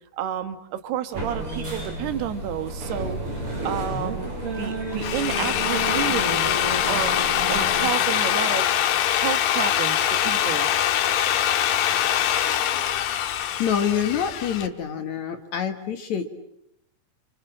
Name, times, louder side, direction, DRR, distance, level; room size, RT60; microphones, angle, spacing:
voice 1, 0.2-3.2 3.7-4.3 4.6-6.6 6.9-7.2 7.5-8.7 9.1-10.7, right 10 dB, 85° right, 10 dB, 3.5 m, -30 dB
sound 1, 1.1-7.9, right 1 dB, 35° right, 7.3 m, -31 dB
Drill, 4.8-14.7, left 11 dB, 85° left, 3.3 m, -23 dB
voice 2, 13.6-16.3, left 8 dB, 55° left, 7 dB, 2.4 m, -26 dB
28.5 x 27.0 x 7.5 m, 0.76 s
omnidirectional pair, 4.5 m